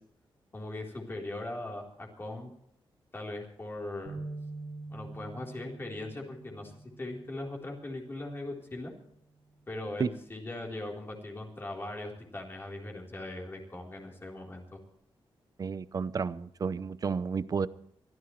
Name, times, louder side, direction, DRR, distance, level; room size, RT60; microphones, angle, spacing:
voice 1, 0.5-2.5 3.1-4.2 4.9-6.7 7.0-8.9 9.7-14.8, left 2 dB, 25° left, 3.9 m, -40 dB
sound 1, 4.1-8.3 8.8-9.0 9.9-10.3, right 3 dB, 65° right, 4.5 m, -45 dB
voice 2, 15.6-17.7, right 5 dB, 40° right, 0.7 m, -31 dB
24.0 x 14.5 x 3.2 m
wide cardioid pair, 150°, 9 cm